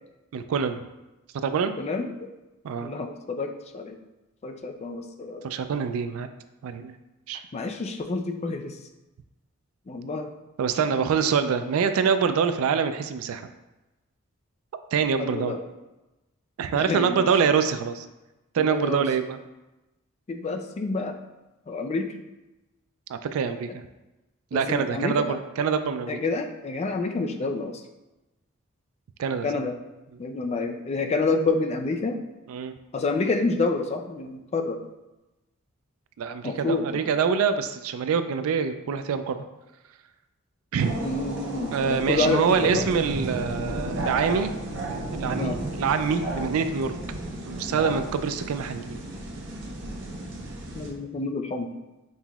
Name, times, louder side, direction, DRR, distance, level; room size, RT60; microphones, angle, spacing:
voice 1, 0.3-0.8 1.3-1.8 2.6-2.9 5.4-6.3 6.6-7.0 7.3-7.4 10.6-13.5 14.9-15.6 16.6-18.1 18.5-19.4 23.1-23.7 24.5-26.2 29.2-29.5 32.5-32.7 36.2-39.4 40.7-41.0 41.7-44.5 44.9-46.9 47.5-49.0, right 6 dB, 85° right, 9 dB, 0.3 m, -25 dB
voice 2, 1.8-2.1 2.8-4.0 4.4-5.5 7.5-8.8 9.9-10.3 10.9-11.1 15.2-15.6 16.7-17.3 18.6-19.1 20.3-21.2 21.7-22.1 24.5-25.2 26.1-27.8 29.4-29.7 30.2-32.2 32.9-34.8 36.4-37.0 41.0-42.9 45.4-45.6 50.7-51.7, left 3 dB, 30° left, 5 dB, 0.3 m, -28 dB
sound 1, 40.8-50.9, right 1 dB, 60° right, 0.8 m, -33 dB
5.5 x 2.9 x 2.3 m, 1.0 s
head